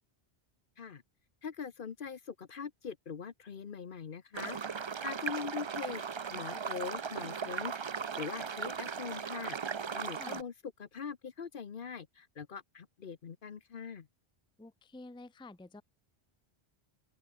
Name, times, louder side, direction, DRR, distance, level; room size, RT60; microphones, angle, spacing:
voice 1, 1.4-4.6 5.0-6.0 6.3-7.7 8.2-9.6 9.9-10.5 10.8-14.1, left 6 dB, 55° left, 1.0 m, -42 dB
sound 1, 4.3-10.4, right 6 dB, 40° right, 0.4 m, -38 dB
voice 2, 14.6-15.8, left 2 dB, 5° left, 0.6 m, -49 dB
open air
omnidirectional pair, 1.1 m